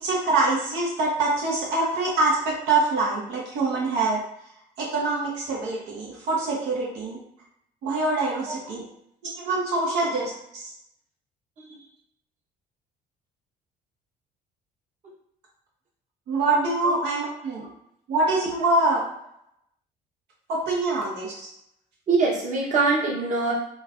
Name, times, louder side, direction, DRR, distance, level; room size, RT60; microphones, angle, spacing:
voice 1, 0.0-4.2 4.8-7.2 7.8-8.8 9.3-10.7 16.3-17.7 18.1-19.0 20.5-21.5, right 2 dB, 85° right, -4 dB, 1.0 m, -25 dB
voice 2, 22.1-23.5, right 3 dB, 45° right, -3 dB, 1.1 m, -23 dB
5.2 x 2.3 x 2.5 m, 0.74 s
cardioid pair, 110°, 17 cm